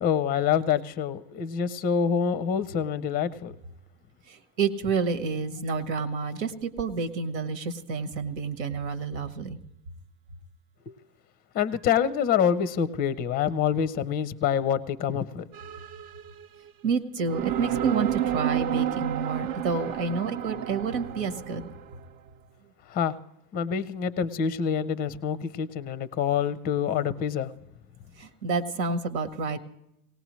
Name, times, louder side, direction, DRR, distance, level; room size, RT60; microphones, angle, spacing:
voice 1, 0.0-3.5 10.9-11.0 11.5-15.5 22.9-23.1 23.5-27.5, left 8 dB, 20° left, 16 dB, 0.4 m, -26 dB
voice 2, 4.3-9.6 16.8-21.7 28.2-29.6, right 4 dB, 90° right, 9 dB, 1.5 m, -29 dB
sound 1, 15.5-16.7 17.3-22.0, right 11 dB, 60° right, 0.9 m, -31 dB
19.0 x 18.0 x 3.1 m, 0.82 s
supercardioid pair, 130°, 49 cm